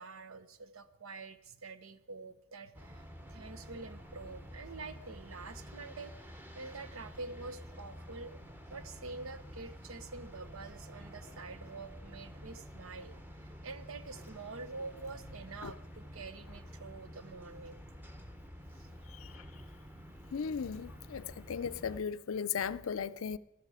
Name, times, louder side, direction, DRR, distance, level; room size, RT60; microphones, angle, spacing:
voice 1, 0.0-3.0 3.3-17.8 18.2-18.3 18.8-18.9 19.9-20.0 21.1-21.2, right 3 dB, 75° right, 0.9 m, -47 dB
sound 1, 2.7-22.0, equal, 10° right, 1.0 m, -50 dB
voice 2, 20.3-23.4, left 7 dB, 70° left, 0.4 m, -36 dB
13.0 x 13.0 x 4.9 m
head